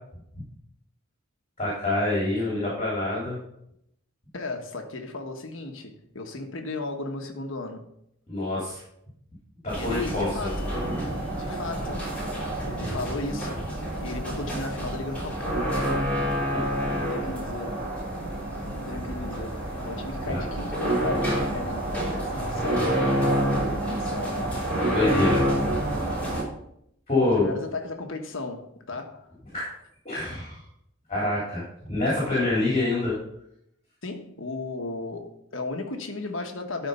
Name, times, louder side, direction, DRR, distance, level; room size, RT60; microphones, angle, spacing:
voice 1, 1.6-3.4 8.3-8.8 9.6-10.3 16.5-16.6 20.3-20.4 24.9-25.5 27.1-27.5 29.5-29.7 30.0-30.6 31.1-33.1, left 2 dB, 30° left, 3.4 m, -26 dB
voice 2, 4.3-7.9 9.8-10.7 11.3-12.1 12.7-13.6 14.0-16.1 16.9-17.8 18.5-23.5 23.8-24.5 27.2-29.3 34.0-36.9, left 2 dB, 65° left, 1.4 m, -35 dB
sound 1, 9.7-26.4, right 1 dB, 5° left, 3.4 m, -28 dB
12.5 x 4.4 x 5.5 m
head